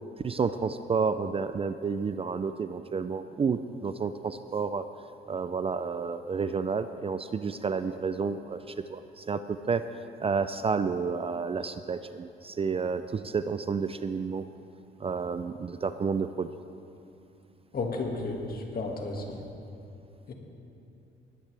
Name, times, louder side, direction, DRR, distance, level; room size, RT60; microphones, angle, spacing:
voice 1, 0.2-4.8 5.3-8.6 8.9-9.8 10.2-14.4 15.0-16.5, right 5 dB, 30° right, 11 dB, 0.4 m, -30 dB
voice 2, 17.7-19.4 20.3-20.4, left 3 dB, 50° left, 1 dB, 2.0 m, -33 dB
19.5 x 10.5 x 3.4 m, 2.7 s
cardioid pair, 90°, 20 cm